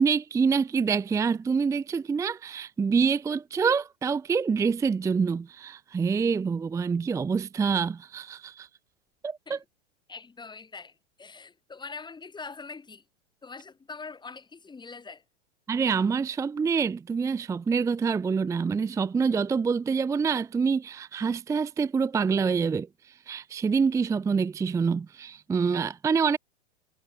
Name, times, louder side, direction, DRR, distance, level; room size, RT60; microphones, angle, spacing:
voice 1, 0.0-8.7 9.2-9.6 15.7-26.4, right 5 dB, 10° right, 0.6 m, -26 dB
voice 2, 10.1-13.0 13.4-15.2, left 4 dB, 10° left, 6.9 m, -43 dB
hypercardioid pair, 110°, 36 cm